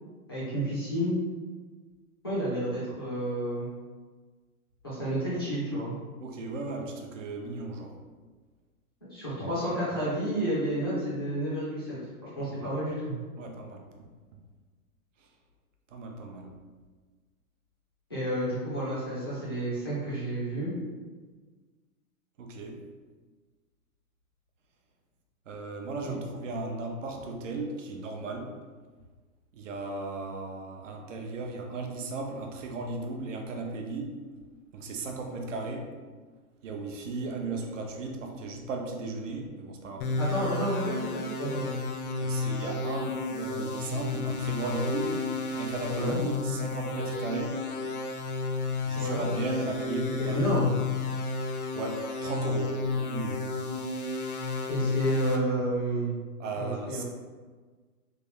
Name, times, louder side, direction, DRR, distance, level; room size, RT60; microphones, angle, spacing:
voice 1, 0.3-1.2 2.2-3.7 4.8-5.9 9.0-12.0 12.2-13.2 18.1-20.7 26.0-26.2 40.2-41.8 45.9-46.2 48.9-49.2 50.2-50.7 54.7-56.1 56.6-57.0, right 1 dB, 15° left, -9 dB, 0.4 m, -30 dB
voice 2, 6.2-7.9 12.6-12.7 13.4-14.4 15.9-16.6 22.4-22.8 25.5-28.5 29.5-34.2 34.7-35.9 36.6-40.1 42.2-45.2 45.5-47.6 48.9-50.7 51.7-53.4 56.4-57.0, right 3 dB, 55° right, 2 dB, 0.6 m, -36 dB
sound 1, 40.0-55.4, left 3 dB, 75° left, 0.7 m, -32 dB
3.3 x 2.4 x 3.4 m, 1.4 s
hypercardioid pair, 170°, 45 cm